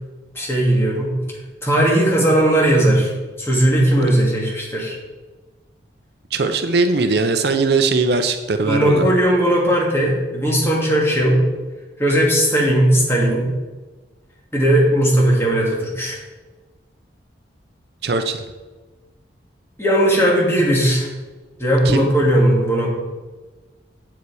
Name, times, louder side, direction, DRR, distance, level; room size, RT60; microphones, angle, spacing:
voice 1, 0.3-1.1 1.6-3.1 3.4-5.0 8.6-11.4 12.0-13.5 14.5-16.2 19.8-21.1 21.6-22.9, right 1 dB, 15° left, -4 dB, 2.2 m, -17 dB
voice 2, 6.3-9.0 18.0-18.4 21.8-22.1, right 3 dB, 60° right, 8 dB, 0.6 m, -19 dB
8.1 x 7.8 x 4.8 m, 1.3 s
head